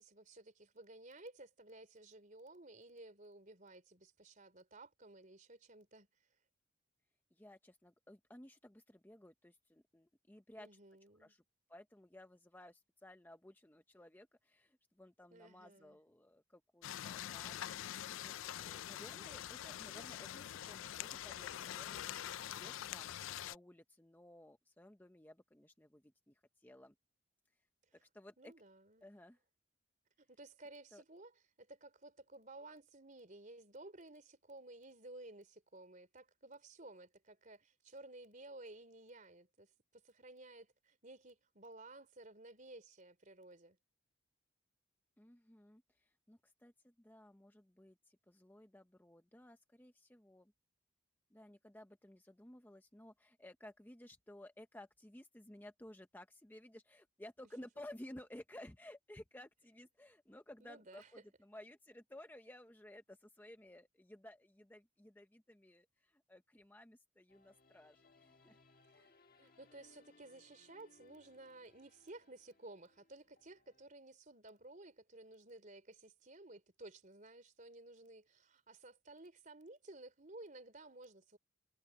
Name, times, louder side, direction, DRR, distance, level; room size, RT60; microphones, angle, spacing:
voice 1, 0.0-6.1 10.6-11.3 15.3-16.0 28.4-29.1 30.2-31.3 31.6-43.8 60.6-61.2 69.4-81.4, right 2 dB, 40° right, 3.9 m, -55 dB
voice 2, 7.3-10.7 11.2-11.4 11.7-17.8 18.2-26.9 28.0-28.5 29.0-29.4 30.9-31.0 45.2-50.5 51.3-68.6 68.9-69.2, left 1 dB, 10° left, 0.7 m, -57 dB
sound 1, 16.8-23.6, left 11 dB, 75° left, 0.4 m, -45 dB
sound 2, 67.3-73.9, left 3 dB, 45° left, 1.7 m, -69 dB
head